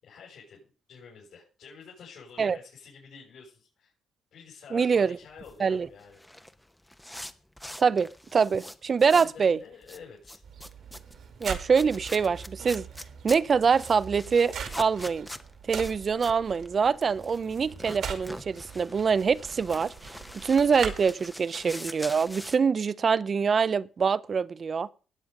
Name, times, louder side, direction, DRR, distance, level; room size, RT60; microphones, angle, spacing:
voice 1, 0.0-3.9 4.3-6.4 9.0-10.4, left 6 dB, 70° left, 6.0 m, -49 dB
voice 2, 4.7-5.2 5.6-5.9 7.8-9.6 11.4-12.8 13.2-15.3 15.7-24.9, right 5 dB, 40° right, 0.5 m, -25 dB
sound 1, 5.2-9.4 9.7-22.6, left 1 dB, 5° left, 0.9 m, -44 dB
sound 2, 10.4-21.1, right 7 dB, 65° right, 2.3 m, -41 dB
18.0 x 8.3 x 5.2 m
cardioid pair, 90°, 0 cm